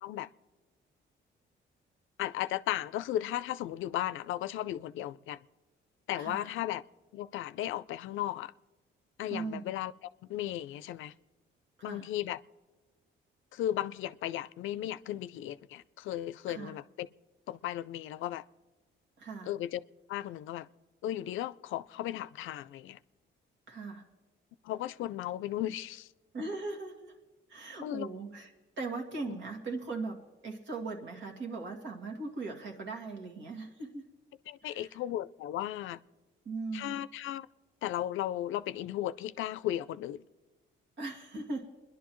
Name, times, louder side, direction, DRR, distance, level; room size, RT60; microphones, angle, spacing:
voice 1, 2.2-5.4 6.1-6.8 7.1-8.5 9.2-9.9 10.3-11.1 11.8-12.4 13.5-17.1 17.5-18.4 19.4-19.8 20.1-20.7 21.0-23.0 24.6-26.1 27.8-28.1 29.3-29.4 34.5-36.0 36.7-37.5 37.8-40.2, left 13 dB, 80° left, 0.5 m, -35 dB
voice 2, 6.2-6.5 9.3-9.7 11.8-12.1 16.5-16.7 19.2-19.5 23.7-24.0 26.3-27.1 27.5-28.5 28.8-34.1 34.7-34.9 36.5-37.0 41.0-41.7, right 3 dB, 70° right, 2.1 m, -39 dB
29.5 x 11.0 x 3.1 m
cardioid pair, 90°, 20 cm